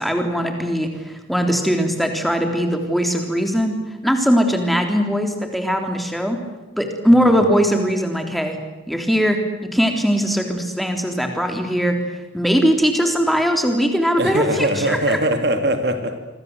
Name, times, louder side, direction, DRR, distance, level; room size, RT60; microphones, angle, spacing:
voice 1, 0.0-6.4 6.8-8.6 8.9-9.4 9.7-12.0 12.3-15.2, equal, ahead, 4 dB, 3.5 m, -20 dB
voice 2, 14.2-16.2, right 1 dB, 55° right, 7 dB, 2.6 m, -21 dB
26.5 x 25.5 x 8.1 m, 1.1 s
head